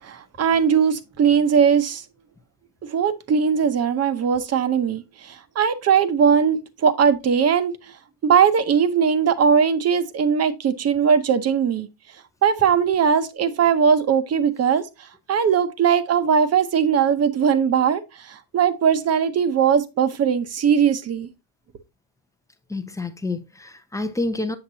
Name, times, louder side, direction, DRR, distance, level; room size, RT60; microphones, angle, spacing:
voice 1, 0.0-2.0 2.9-7.7 8.2-11.9 12.4-14.9 15.3-21.3, right 7 dB, 35° right, 0.7 m, -19 dB
voice 2, 22.7-24.6, left 2 dB, 10° left, 0.5 m, -28 dB
8.0 x 7.1 x 2.7 m
cardioid pair, 165°, 43 cm